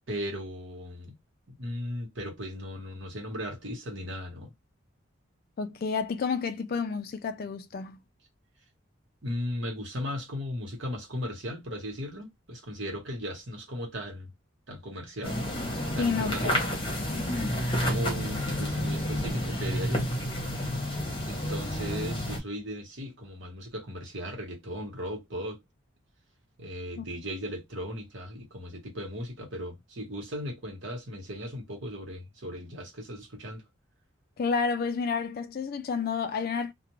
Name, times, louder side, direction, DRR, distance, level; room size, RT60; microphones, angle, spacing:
voice 1, 0.1-1.2 1.5-4.5 9.2-14.3 14.7-15.6 15.9-16.7 17.7-20.1 21.3-25.6 26.6-33.6, equal, 60° right, 1.1 m, -37 dB
voice 2, 5.6-8.0 16.0-16.8 27.0-27.1 34.4-36.7, left 5 dB, 45° left, 0.3 m, -30 dB
sound 1, 15.2-22.4, equal, 25° left, 0.8 m, -30 dB
2.4 x 2.1 x 2.9 m
head